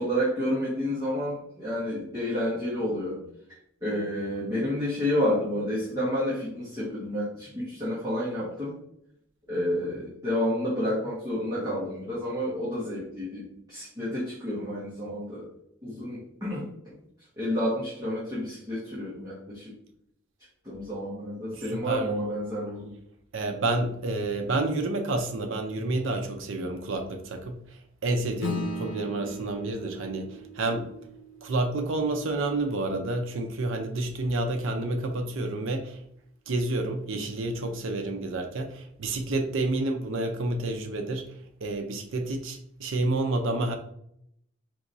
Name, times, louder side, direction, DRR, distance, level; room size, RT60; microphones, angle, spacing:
voice 1, 0.0-3.2 3.8-8.7 9.5-15.4 15.8-16.9 17.4-19.7 20.6-22.9, equal, 15° right, -10 dB, 1.3 m, -30 dB
voice 2, 21.5-22.1 23.3-30.9 31.4-36.0 36.5-41.3 41.6-43.8, right 2 dB, 65° right, 4 dB, 0.6 m, -29 dB
Acoustic guitar / Strum, 28.4-33.2, left 1 dB, 85° left, 0.7 m, -38 dB
4.8 x 3.0 x 2.6 m, 0.74 s
head